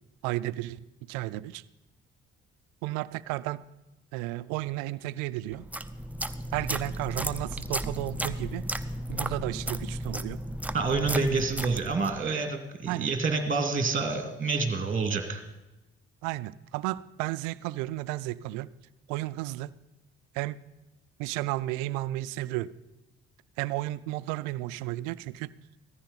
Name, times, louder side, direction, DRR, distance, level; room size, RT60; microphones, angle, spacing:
voice 1, 0.2-1.6 2.8-3.6 4.1-5.7 6.5-8.7 9.1-10.4 12.9-13.1 16.2-18.7 19.1-19.7 20.3-20.6 21.2-22.7 23.6-25.5, right 17 dB, 80° right, 18 dB, 0.5 m, -33 dB
sound 1, 5.5-12.2, right 1 dB, 5° right, 0.7 m, -34 dB
voice 2, 10.7-15.4, right 4 dB, 25° right, 6 dB, 2.1 m, -28 dB
16.0 x 14.0 x 4.0 m, 1.0 s
hypercardioid pair, 50°, 31 cm